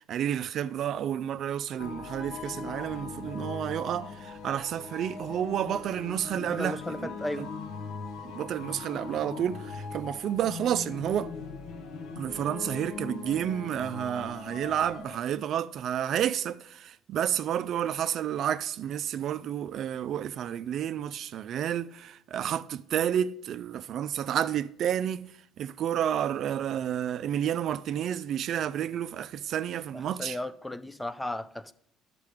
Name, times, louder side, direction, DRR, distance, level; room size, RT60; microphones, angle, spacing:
voice 1, 0.0-7.5 8.2-11.3 12.2-30.4, right 10 dB, 60° right, 0.4 m, -30 dB
sound 1, 1.8-15.2, left 4 dB, 70° left, 0.9 m, -40 dB
voice 2, 6.4-7.5 30.2-31.7, left 1 dB, 10° left, 0.4 m, -35 dB
10.5 x 6.7 x 4.9 m
supercardioid pair, 85°, 0 cm